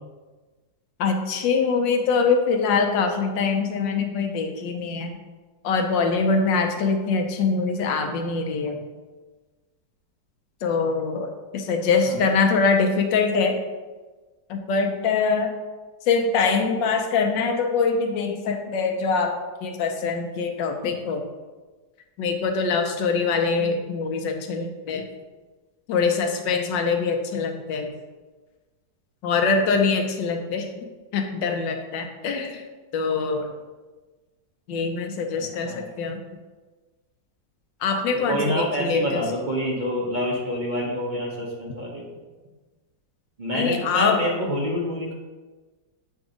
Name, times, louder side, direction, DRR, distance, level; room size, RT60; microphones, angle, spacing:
voice 1, 1.0-5.2 5.6-8.8 10.6-13.6 14.5-15.5 16.1-19.4 19.6-21.3 22.2-25.0 25.9-27.9 29.2-30.7 31.1-32.6 32.9-33.5 34.7-36.2 37.8-39.2 43.5-44.2, left 4 dB, 85° left, 4 dB, 1.4 m, -23 dB
voice 2, 38.3-42.1 43.4-45.1, equal, 40° right, -4 dB, 0.7 m, -27 dB
8.0 x 2.7 x 4.9 m, 1.3 s
omnidirectional pair, 2.0 m